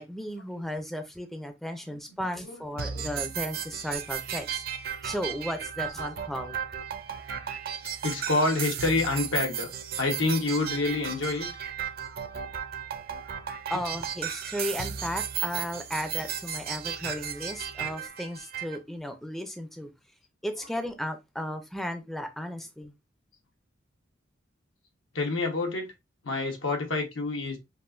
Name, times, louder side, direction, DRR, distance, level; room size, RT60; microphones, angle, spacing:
voice 1, 0.0-4.6 5.0-6.6 13.7-19.9 20.4-22.9, equal, ahead, 0.4 m, -35 dB
voice 2, 1.8-3.0 8.0-9.7 10.0-11.5 13.7-13.8 20.5-20.7 25.1-25.9 26.2-27.6, left 3 dB, 85° left, 1.2 m, -28 dB
sound 1, 2.8-18.8, right 8 dB, 50° right, 0.6 m, -35 dB
5.4 x 2.6 x 2.5 m
head